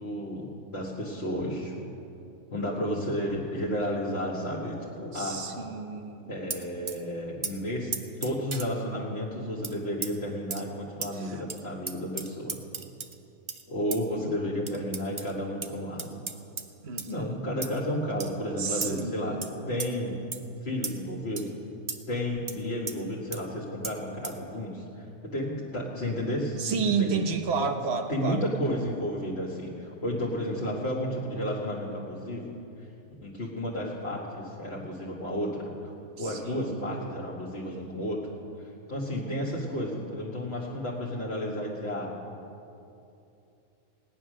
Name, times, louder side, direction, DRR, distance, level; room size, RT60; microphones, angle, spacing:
voice 1, 0.0-1.7 2.5-5.4 6.3-7.9 8.2-12.6 13.7-16.2 17.1-19.4 19.7-20.1 20.6-21.6 22.1-27.2 28.1-32.5 32.8-32.9 33.2-38.3 38.6-42.1, equal, 50° left, -4 dB, 1.8 m, -32 dB
voice 2, 5.1-6.4 11.2-11.4 16.8-17.3 18.6-19.7 26.6-28.5 36.2-37.0, right 5 dB, 55° right, 7 dB, 1.2 m, -31 dB
sound 1, 6.5-7.0 7.4-7.5 7.9-8.7 9.6-9.7 10.0-10.1 10.5-10.6 11.0-11.1 11.5-11.6 11.9-13.1 13.5-13.6 13.9-14.0 14.7-15.3 15.6-15.7 16.0-16.6 17.0-17.1 17.6-17.8 18.2-18.3 18.8-19.0 19.4-19.5 19.8-19.9 20.3-20.4 20.8-21.0 21.4-21.5 21.9-22.0 22.5-22.6 22.9-23.0 23.3-23.4 23.8-23.9 24.2-24.4, right 4 dB, 35° right, 0.5 m, -35 dB
17.0 x 9.9 x 6.4 m, 2.8 s
omnidirectional pair, 1.4 m